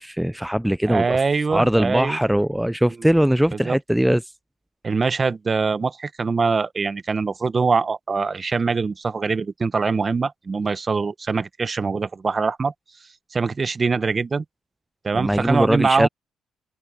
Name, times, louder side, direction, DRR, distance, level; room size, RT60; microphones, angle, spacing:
voice 1, 0.0-1.2 1.5-4.3 15.1-16.1, equal, 5° right, 0.4 m, -21 dB
voice 2, 0.9-2.2 3.6-3.8 4.8-12.7 13.3-14.4 15.0-16.1, right 4 dB, 35° right, 0.9 m, -23 dB
cardioid pair, 90°, 0 cm